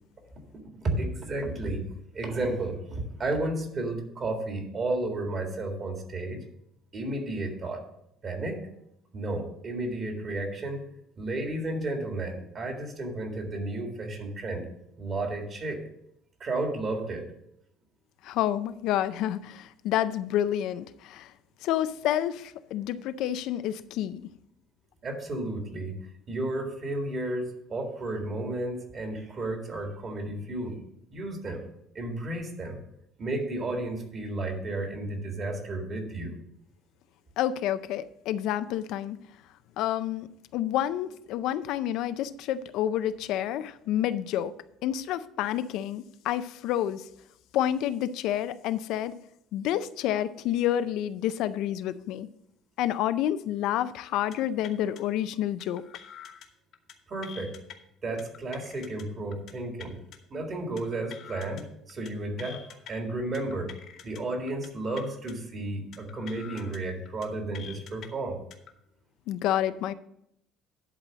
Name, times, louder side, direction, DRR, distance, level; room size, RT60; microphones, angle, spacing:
voice 1, 0.8-1.9 2.1-6.4 6.9-7.8 8.2-8.6 9.1-10.8 11.2-14.7 15.0-15.8 16.4-17.3 25.0-26.0 26.3-30.8 31.1-31.7 31.9-32.8 33.2-36.3 57.1-57.5 58.0-60.0 60.3-63.7 64.0-68.4, right 2 dB, 30° right, 3 dB, 1.9 m, -32 dB
voice 2, 18.2-21.3 21.6-24.2 37.4-39.2 39.8-40.3 40.5-44.5 44.8-47.1 47.5-49.1 49.5-52.3 52.8-55.8 69.3-69.9, left 11 dB, 65° left, 13 dB, 0.4 m, -29 dB
sound 1, 54.2-54.4 54.6-55.0 55.6-56.5 56.7-56.9 57.2-57.7 58.2-59.0 59.3-59.5 59.8-60.2 60.8-61.6 61.9-62.1 62.4-62.9 63.3-64.2 64.5-64.7 65.0-65.3 65.9-66.8 67.1-67.3 67.5-68.1 68.5-68.7, left 9 dB, 50° left, 1.1 m, -46 dB
11.0 x 4.1 x 7.3 m, 0.77 s
cardioid pair, 160°, 0 cm